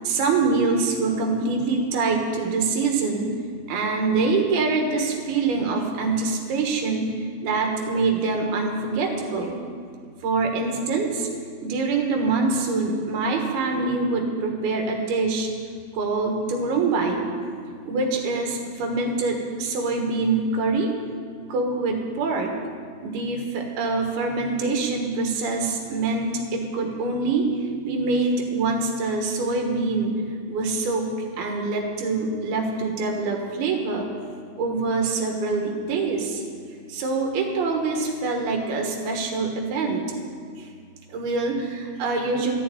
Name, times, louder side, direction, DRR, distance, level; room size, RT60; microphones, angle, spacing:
voice 1, 0.0-3.3 3.7-9.6 10.2-11.3 11.6-15.5 15.9-17.3 17.9-20.9 21.5-22.5 23.0-27.6 27.8-30.1 30.5-34.1 34.6-36.4 36.9-40.0 40.6-40.7 41.1-42.5, right 3 dB, 65° right, 2 dB, 3.2 m, -25 dB
13.5 x 6.9 x 9.1 m, 2.1 s
omnidirectional pair, 5.0 m